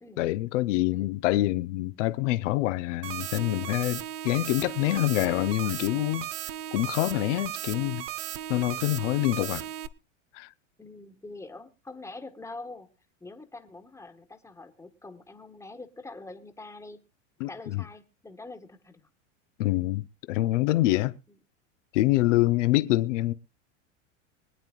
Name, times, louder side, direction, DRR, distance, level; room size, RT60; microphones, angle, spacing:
voice 1, 0.2-6.3 6.7-8.0 8.5-9.6 10.3-10.5 17.4-17.8 19.6-21.1 21.9-23.3, left 17 dB, 70° left, 0.9 m, -26 dB
sound 1, 3.0-9.9, right 12 dB, 60° right, 0.9 m, -36 dB
voice 2, 9.2-9.7 10.8-12.9 13.2-17.0 17.5-19.1, left 2 dB, 10° left, 1.4 m, -45 dB
24.5 x 9.0 x 2.4 m
supercardioid pair, 115°, 38 cm